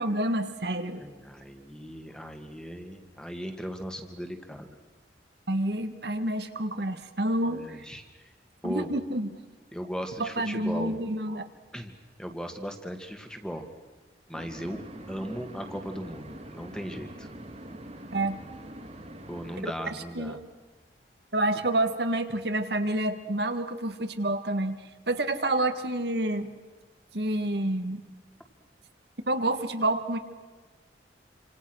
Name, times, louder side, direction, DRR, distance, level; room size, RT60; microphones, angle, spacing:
voice 1, 0.0-1.0 5.5-7.9 8.6-9.3 10.2-11.5 18.1-18.4 20.2-20.4 21.3-24.8 25.1-26.5 27.1-28.0 29.3-30.2, right 1 dB, 60° right, 8 dB, 1.7 m, -28 dB
voice 2, 1.0-4.8 7.5-8.3 8.6-8.9 9.7-11.0 11.7-11.9 12.2-13.7 14.3-14.8 15.1-17.3 19.3-20.4, equal, 5° left, 5 dB, 2.2 m, -37 dB
sound 1, 14.3-19.6, right 1 dB, 35° right, 2.5 m, -44 dB
27.5 x 26.5 x 6.4 m, 1.4 s
head